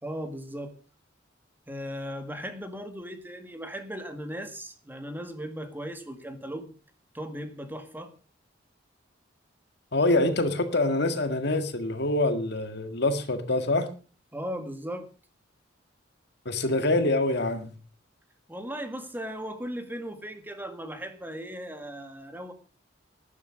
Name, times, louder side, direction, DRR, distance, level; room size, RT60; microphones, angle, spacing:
voice 1, 0.0-0.7 1.7-6.7 7.1-8.1 14.3-15.1 18.5-22.5, equal, 10° right, 1.9 m, -37 dB
voice 2, 9.9-13.9 16.5-17.8, left 2 dB, 60° left, 1.8 m, -25 dB
12.5 x 11.0 x 6.3 m
head